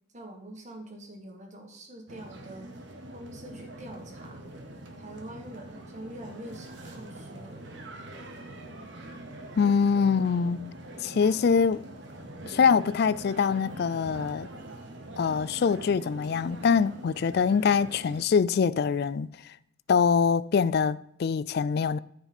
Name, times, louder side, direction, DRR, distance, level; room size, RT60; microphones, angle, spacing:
voice 1, 0.1-2.7 3.1-4.4 5.0-7.7, right 1 dB, 35° right, 1.6 m, -44 dB
sound 1, 2.1-18.2, right 1 dB, 60° right, 1.2 m, -44 dB
voice 2, 9.6-10.7 11.0-11.8 12.5-14.5 15.2-19.3 19.9-22.0, left 6 dB, 50° left, 0.3 m, -24 dB
13.5 x 4.7 x 4.4 m
head